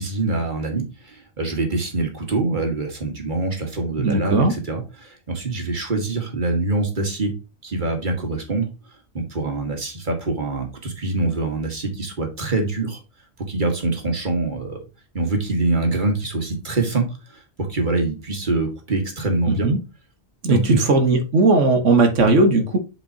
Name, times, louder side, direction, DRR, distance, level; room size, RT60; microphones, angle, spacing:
voice 1, 0.0-7.3 7.6-8.7 9.1-13.0 13.5-14.8 15.1-17.1 17.3-17.4 17.7-19.7 20.5-21.0, right 2 dB, 40° right, 3 dB, 2.0 m, -24 dB
voice 2, 4.0-4.5 19.5-19.8 20.4-22.8, right 3 dB, 90° right, 7 dB, 1.7 m, -17 dB
7.5 x 5.1 x 2.8 m, 0.28 s
omnidirectional pair, 1.2 m